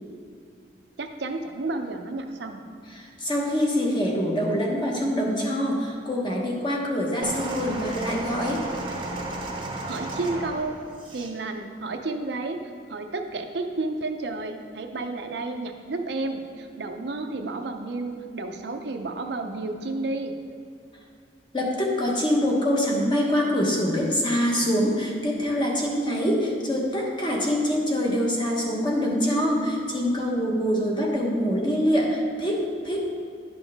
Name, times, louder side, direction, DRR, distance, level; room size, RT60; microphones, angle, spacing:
voice 1, 1.0-2.6 9.6-10.8 11.1-12.6 12.9-20.4, right 2 dB, 65° right, 5 dB, 0.5 m, -31 dB
voice 2, 2.9-8.6 21.5-33.2, equal, 25° left, -2 dB, 1.1 m, -25 dB
sound 1, 7.2-11.4 12.2-12.4, right 2 dB, 25° right, 0.8 m, -33 dB
10.5 x 5.5 x 3.5 m, 2.2 s
head